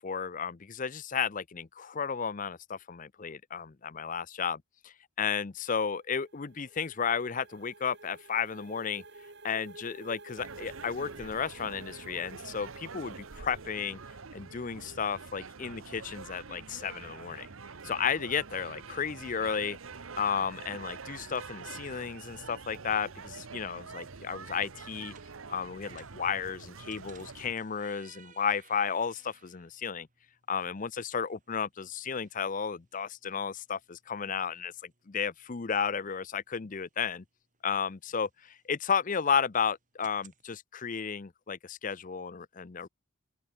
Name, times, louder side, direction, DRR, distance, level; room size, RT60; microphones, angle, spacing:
voice 1, 0.0-9.0 9.4-14.0 14.3-17.5 17.8-19.8 20.2-25.1 25.5-30.1 30.5-37.2 37.6-42.9, left 6 dB, 40° left, 0.6 m, -33 dB
sound 1, 5.8-14.5, right 2 dB, 55° right, 5.3 m, -52 dB
sound 2, 10.4-27.5, right 5 dB, 75° right, 1.0 m, -46 dB
sound 3, 23.2-40.4, right 6 dB, 40° right, 7.9 m, -63 dB
open air
head